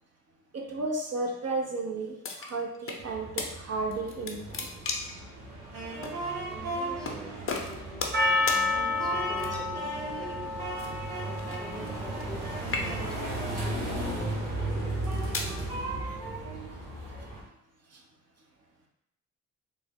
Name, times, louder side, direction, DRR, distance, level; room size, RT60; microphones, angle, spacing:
voice 1, 0.5-4.7 17.9-18.0, right 3 dB, 45° right, 0 dB, 0.7 m, -33 dB
sound 1, 2.2-3.0 3.4-3.5 3.9-5.2 6.0-6.2 7.0-7.2 7.5-8.2 8.5-8.6 9.4-9.8 10.8-12.4 12.6-13.2 13.9-14.2 14.9-15.5, left 4 dB, 40° left, 0.7 m, -35 dB
sound 2, 3.0-17.4, right 2 dB, 90° right, 0.9 m, -35 dB
voice 2, 6.5-8.6 9.0-10.7 11.2-15.0, equal, ahead, -1 dB, 0.7 m, -46 dB
Percussion, 8.1-12.7, left 3 dB, 30° right, 1.0 m, -30 dB
3.4 x 2.0 x 3.6 m, 0.78 s
supercardioid pair, 55°, 34 cm